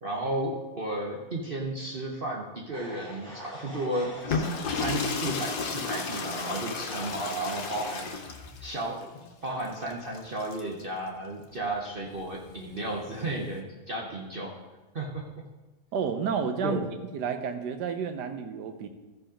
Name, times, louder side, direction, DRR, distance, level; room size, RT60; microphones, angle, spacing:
voice 1, 0.0-8.2 8.6-9.1 9.4-14.5 14.9-15.2 16.6-16.9, right 1 dB, 40° right, -2 dB, 0.9 m, -33 dB
sound 1, 2.7-8.1, equal, 5° left, 2.1 m, -43 dB
sound 2, 4.1-10.8 12.1-13.6, left 5 dB, 75° left, 1.5 m, -34 dB
voice 2, 15.9-16.8 17.1-18.9, right 6 dB, 80° right, 8 dB, 1.4 m, -30 dB
13.5 x 5.0 x 5.1 m, 1.2 s
omnidirectional pair, 1.8 m